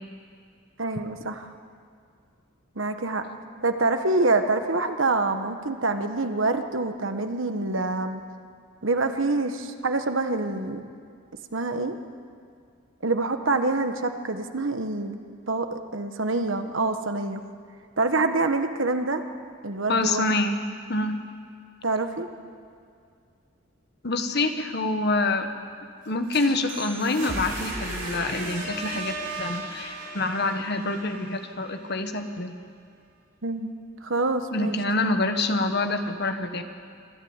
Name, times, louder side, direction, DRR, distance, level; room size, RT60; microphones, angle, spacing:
voice 1, 0.8-1.5 2.7-3.2 3.6-8.2 8.8-10.8 11.5-12.0 13.0-15.2 15.5-17.4 18.0-19.2 19.6-20.2 21.8-22.3 33.4-33.7 34.0-34.8, right 3 dB, 70° right, 7 dB, 1.4 m, -26 dB
voice 2, 19.9-20.6 20.9-21.2 24.0-25.5 26.1-32.6 34.5-36.6, left 2 dB, 50° left, 7 dB, 1.5 m, -26 dB
sound 1, 26.0-31.9, right 2 dB, 40° right, 5.6 m, -35 dB
25.0 x 13.0 x 9.0 m, 2.3 s
head